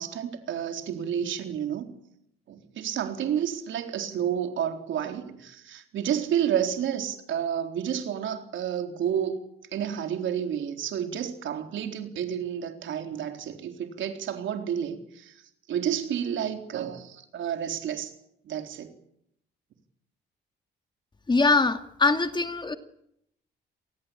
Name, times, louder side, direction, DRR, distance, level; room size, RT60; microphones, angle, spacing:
voice 1, 0.0-1.9 2.5-9.4 9.7-15.3 15.7-18.1 18.5-18.9, right 9 dB, 75° right, 5 dB, 3.9 m, -30 dB
voice 2, 21.3-22.7, left 3 dB, 20° left, 8 dB, 2.1 m, -23 dB
28.0 x 19.5 x 8.8 m, 0.77 s
cardioid pair, 90°, 20 cm